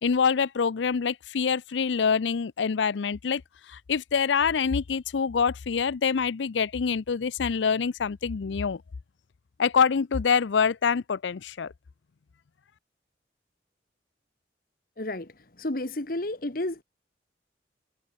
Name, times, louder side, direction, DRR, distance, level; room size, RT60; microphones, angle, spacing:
voice 1, 0.0-3.4 3.7-8.8 9.6-11.7, left 6 dB, 90° left, 0.5 m, -25 dB
voice 2, 15.0-15.3 15.6-16.8, left 1 dB, 50° left, 1.6 m, -31 dB
head